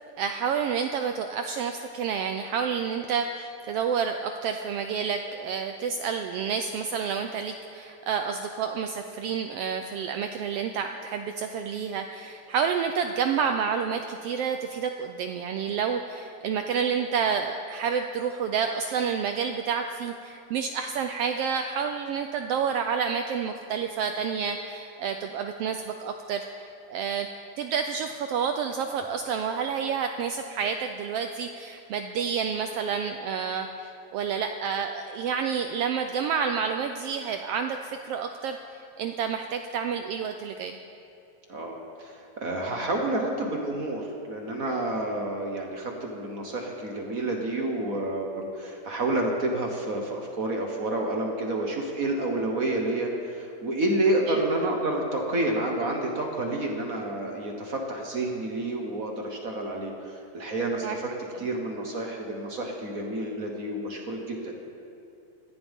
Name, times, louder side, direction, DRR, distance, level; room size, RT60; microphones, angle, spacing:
voice 1, 0.2-27.3 27.6-40.8 54.3-54.4 60.8-61.0, right 6 dB, 85° right, 6 dB, 1.3 m, -29 dB
voice 2, 41.5-61.1 61.4-64.5, right 2 dB, 50° right, 1 dB, 1.1 m, -29 dB
20.0 x 14.5 x 3.6 m, 2.7 s
omnidirectional pair, 3.3 m